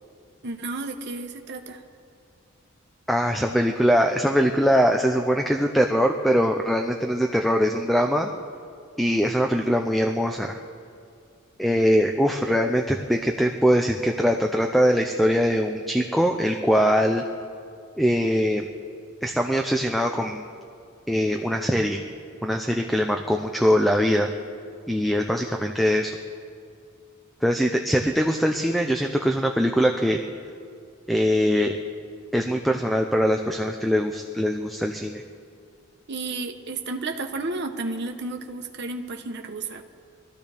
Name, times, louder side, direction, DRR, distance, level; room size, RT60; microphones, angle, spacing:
voice 1, 0.4-1.8 36.1-39.8, right 3 dB, 50° right, 4 dB, 1.0 m, -32 dB
voice 2, 3.1-8.3 9.0-10.6 11.6-17.2 18.0-18.6 19.2-20.4 21.1-22.0 22.4-24.3 24.9-26.1 27.4-30.2 31.1-31.7 32.3-35.2, equal, ahead, 3 dB, 0.5 m, -22 dB
24.5 x 14.0 x 3.4 m, 2.4 s
head